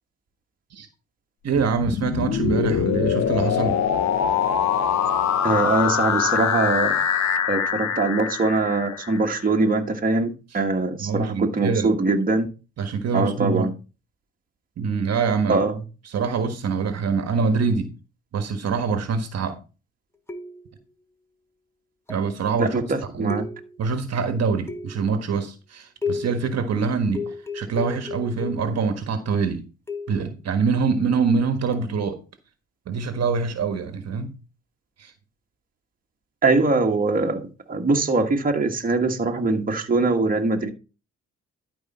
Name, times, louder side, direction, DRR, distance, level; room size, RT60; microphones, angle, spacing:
voice 1, 1.4-3.8 11.0-11.9 12.8-13.7 14.8-15.6 16.1-17.9 18.3-19.6 22.1-22.8 23.1-23.4 23.8-29.7 30.1-32.2 32.9-34.3 35.0-35.1, right 5 dB, 60° right, 1.4 m, -24 dB
sound 1, 1.5-9.5, left 8 dB, 65° left, 1.1 m, -23 dB
voice 2, 5.4-7.0 7.5-12.5 13.1-13.7 15.5-15.8 22.6-23.4 36.4-37.4 37.7-40.7, right 3 dB, 30° right, 1.6 m, -22 dB
sound 2, 20.3-20.8 22.1-22.4 23.3-23.9 24.7-25.2 26.0-26.5 27.1-28.8 29.9-30.3 31.7-32.0, left 4 dB, 10° left, 1.2 m, -33 dB
11.5 x 4.9 x 4.3 m
cardioid pair, 90°, 30 cm